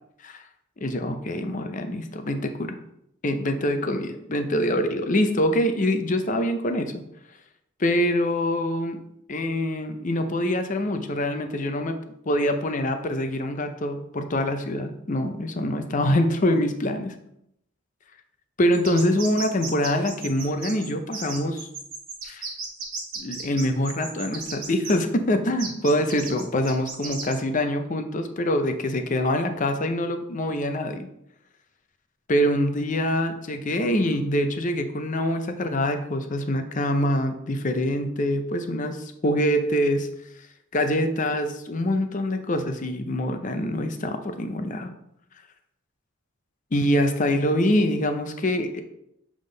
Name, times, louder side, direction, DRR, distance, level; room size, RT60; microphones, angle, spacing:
voice 1, 0.8-2.8 3.2-7.0 7.8-9.0 9.3-12.0 12.3-17.1 18.6-21.7 22.2-22.4 23.2-31.1 32.3-40.1 40.7-44.9 46.7-48.8, left 1 dB, 35° left, 7 dB, 0.6 m, -25 dB
sound 1, 18.7-24.9 25.6-27.4, right 4 dB, 40° right, 1.4 m, -35 dB
7.3 x 3.6 x 3.9 m, 0.77 s
head